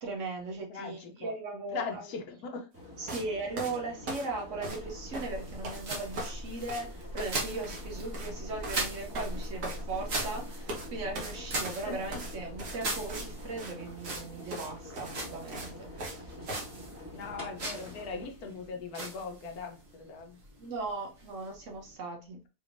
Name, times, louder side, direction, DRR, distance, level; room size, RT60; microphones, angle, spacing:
voice 1, 0.0-2.0 3.0-16.6 20.6-22.4, right 3 dB, 60° right, 1.0 m, -38 dB
voice 2, 0.7-1.3 1.7-2.7 11.9-12.2 17.1-20.4, left 4 dB, 70° left, 1.2 m, -40 dB
sound 1, 2.7-18.2, left 1 dB, 10° right, 1.4 m, -47 dB
sound 2, 3.1-3.3 3.6-4.9 5.1-5.8 6.1-6.4 6.7-6.9 7.2-7.4 7.6-7.8 8.1-8.3 8.6-8.8 9.2-10.3 10.7-10.9 11.2-13.3 13.6-13.7 14.1-14.2 14.5-14.7 14.9-16.2 16.5-16.7, right 1 dB, 75° right, 1.7 m, -40 dB
sound 3, 4.7-22.0, right 2 dB, 45° right, 1.4 m, -40 dB
4.2 x 3.3 x 2.5 m
omnidirectional pair, 1.7 m